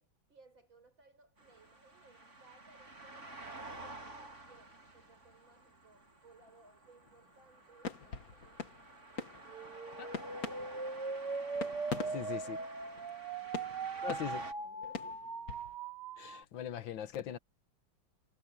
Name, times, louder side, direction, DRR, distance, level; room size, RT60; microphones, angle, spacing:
voice 1, 0.0-3.4 3.7-8.7 11.9-14.3 14.5-15.3, right 3 dB, 80° right, 7.6 m, -63 dB
sound 1, 1.4-14.5, right 2 dB, 35° right, 4.0 m, -51 dB
sound 2, 7.1-7.3 7.8-13.3 13.5-15.8, left 5 dB, 50° left, 1.9 m, -44 dB
sound 3, 9.5-16.4, right 4 dB, 60° right, 3.1 m, -40 dB
voice 2, 12.1-12.6 14.0-14.4 16.2-17.4, left 9 dB, 75° left, 1.8 m, -40 dB
omnidirectional pair, 2.1 m